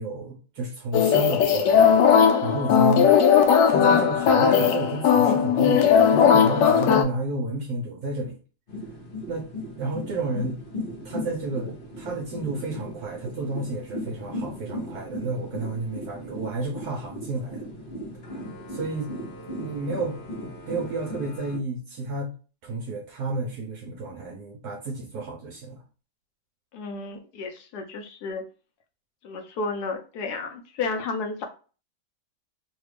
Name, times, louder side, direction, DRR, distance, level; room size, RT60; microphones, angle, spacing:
voice 1, 0.0-3.1 3.7-8.4 9.3-9.5 9.8-10.6 11.0-17.7 18.7-19.1 19.4-20.2 20.7-22.3 22.6-25.8, right 3 dB, 70° right, 0 dB, 1.1 m, -31 dB
sound 1, 0.9-7.0, left 7 dB, 90° left, 1.2 m, -18 dB
sound 2, 8.7-21.6, left 1 dB, 40° left, 0.8 m, -37 dB
voice 2, 26.7-28.4 29.2-31.5, left 4 dB, 70° left, 4 dB, 1.2 m, -32 dB
3.3 x 2.3 x 3.2 m, 0.36 s
omnidirectional pair, 1.8 m